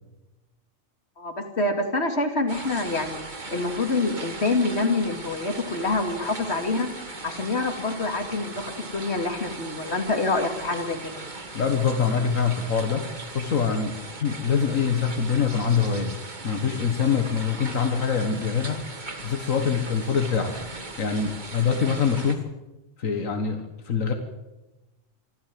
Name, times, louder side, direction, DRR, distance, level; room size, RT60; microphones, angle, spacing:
voice 1, 1.2-6.9 7.2-11.2, left 3 dB, 55° left, 5 dB, 2.8 m, -26 dB
sound 1, 2.5-22.3, right 3 dB, 35° right, 1.9 m, -38 dB
voice 2, 11.5-13.9 14.2-16.1 16.4-18.8 19.2-20.5 21.0-22.4 23.0-24.1, left 6 dB, 80° left, 6 dB, 1.9 m, -24 dB
25.0 x 14.5 x 7.6 m, 1.1 s
omnidirectional pair, 1.4 m